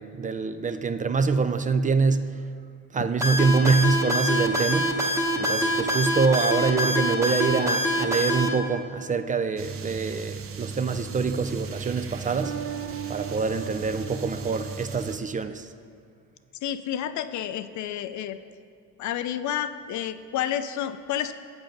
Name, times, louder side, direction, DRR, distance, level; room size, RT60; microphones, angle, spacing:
voice 1, 0.0-2.3 2.9-4.9 5.4-12.6 13.1-15.7, right 4 dB, 25° right, 10 dB, 0.3 m, -25 dB
sound 1, 3.2-8.5, equal, 10° right, 1.1 m, -24 dB
sound 2, 9.6-15.2, right 6 dB, 45° right, 0.7 m, -36 dB
voice 2, 16.6-18.4 19.0-21.3, left 10 dB, 70° left, 11 dB, 0.5 m, -30 dB
7.7 x 7.1 x 5.3 m, 2.3 s
cardioid pair, 90°, 30 cm